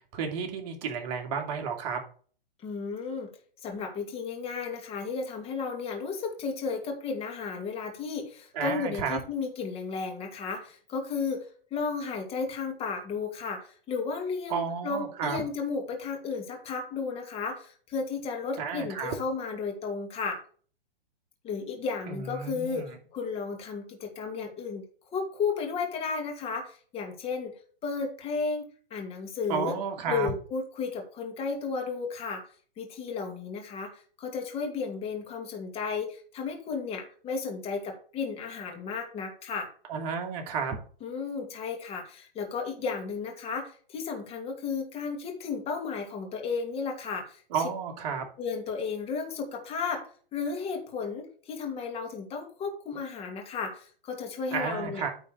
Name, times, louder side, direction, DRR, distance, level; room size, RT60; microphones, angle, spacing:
voice 1, 0.1-2.0 8.5-9.2 14.5-15.4 18.6-19.1 22.1-23.0 29.5-30.3 39.9-40.8 47.5-48.2 54.5-55.1, right 6 dB, 45° right, 3 dB, 2.2 m, -32 dB
voice 2, 2.6-3.3 3.6-20.4 21.4-24.8 25.1-27.5 27.8-29.7 30.1-32.4 32.8-39.7 41.0-47.4 48.4-55.0, left 5 dB, 20° left, 2 dB, 2.1 m, -33 dB
9.5 x 3.8 x 6.5 m, 0.43 s
hypercardioid pair, 140°, 29 cm